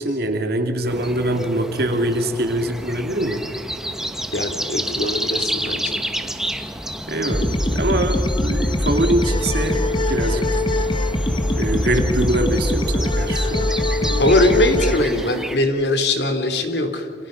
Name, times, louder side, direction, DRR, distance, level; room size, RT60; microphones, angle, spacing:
voice 1, 0.0-3.4 7.1-9.8 10.1-10.4 11.6-13.7 14.0-14.3, right 1 dB, 60° right, 5 dB, 2.4 m, -23 dB
sound 1, 0.8-15.6, right 1 dB, 5° right, 1.3 m, -30 dB
voice 2, 4.3-5.8 14.2-17.1, left 1 dB, 70° left, 6 dB, 3.0 m, -20 dB
sound 2, 7.3-15.0, left 1 dB, 25° left, 1.4 m, -22 dB
29.0 x 27.0 x 5.2 m, 2.1 s
head